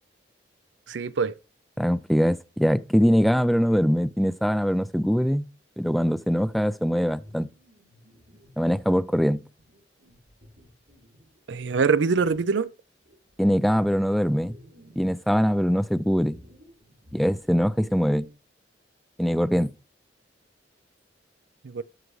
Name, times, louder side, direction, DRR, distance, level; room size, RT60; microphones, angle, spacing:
voice 1, 0.9-1.3 11.5-12.7 21.6-21.8, right 5 dB, 80° right, 0.5 m, -24 dB
voice 2, 1.8-5.5 5.8-7.5 8.6-9.4 13.4-14.5 15.0-16.4 17.1-18.3 19.2-19.7, equal, ahead, 0.3 m, -22 dB
sound 1, 7.0-9.0 9.6-11.6 12.2-12.5 13.0-15.2 15.5-18.3, equal, 60° right, 3.3 m, -54 dB
12.5 x 6.1 x 3.1 m
head